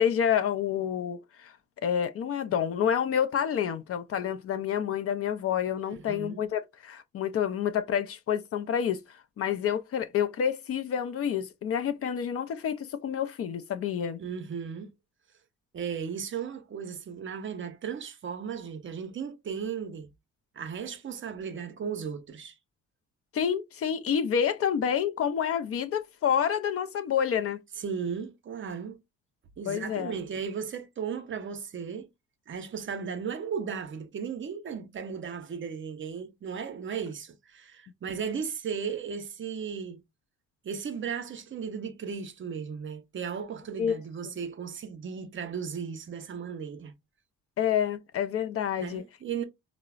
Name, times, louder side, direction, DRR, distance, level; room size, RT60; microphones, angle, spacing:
voice 1, 0.0-1.5 1.8-14.2 23.3-27.6 29.7-30.1 43.8-44.0 44.3-44.4 47.6-49.0, left 8 dB, 50° left, 0.4 m, -28 dB
voice 2, 5.9-6.4 14.2-14.9 15.7-20.1 20.5-22.6 27.8-29.0 29.6-32.1 32.5-40.0 40.6-46.9 48.8-49.4, right 6 dB, 40° right, 0.6 m, -36 dB
3.9 x 2.0 x 2.3 m
cardioid pair, 90°, 30 cm